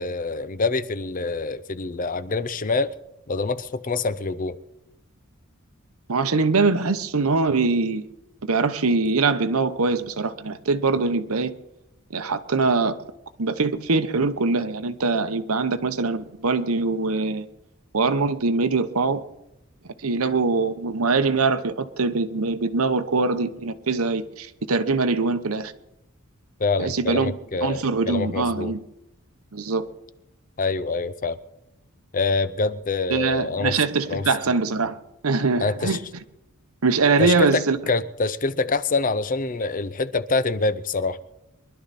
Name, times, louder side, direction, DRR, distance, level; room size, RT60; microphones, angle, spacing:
voice 1, 0.0-2.9 3.3-4.6 26.6-28.7 30.6-31.4 32.1-33.8 34.1-34.3 35.6-36.0 37.2-41.2, left 3 dB, 40° left, 0.6 m, -25 dB
voice 2, 6.1-8.1 8.5-11.5 12.1-13.0 13.4-17.5 17.9-19.2 20.0-25.7 26.8-27.3 27.6-28.8 29.5-29.9 33.1-35.0 35.2-36.0 36.8-37.8, right 3 dB, 80° right, 0.9 m, -23 dB
23.5 x 11.5 x 4.2 m
head